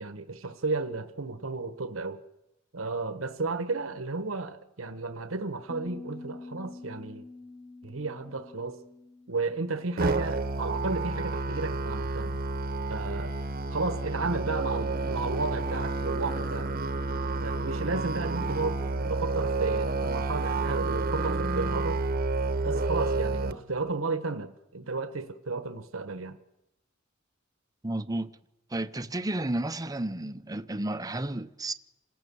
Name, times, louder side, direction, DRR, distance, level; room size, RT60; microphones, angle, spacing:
voice 1, 0.0-2.2 2.7-7.2 7.8-8.8 9.3-12.4 12.9-13.3 13.7-16.7 17.4-22.0 22.6-26.4, right 3 dB, 85° right, 1.2 m, -33 dB
Piano, 5.7-11.3, left 3 dB, 10° left, 1.3 m, -47 dB
Musical instrument, 10.0-23.5, right 2 dB, 45° right, 1.0 m, -30 dB
voice 2, 27.8-28.3 28.7-31.7, right 1 dB, 20° right, 0.7 m, -32 dB
27.5 x 17.5 x 7.1 m
head